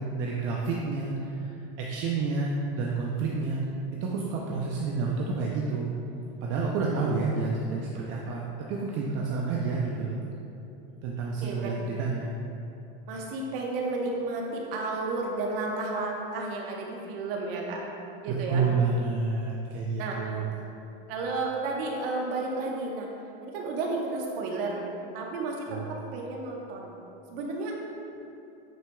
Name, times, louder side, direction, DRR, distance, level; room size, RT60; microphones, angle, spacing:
voice 1, 0.0-3.6 4.0-5.9 6.4-10.2 11.0-12.3 18.3-20.5 25.7-26.0, right 4 dB, 45° right, -3 dB, 0.6 m, -29 dB
voice 2, 11.4-11.7 13.1-17.8 18.2-18.6 20.0-20.4 21.1-23.1 23.4-24.8 25.1-26.9 27.3-27.7, right 3 dB, 70° right, -1 dB, 1.2 m, -32 dB
9.0 x 4.6 x 2.3 m, 2.9 s
supercardioid pair, 135°, 29 cm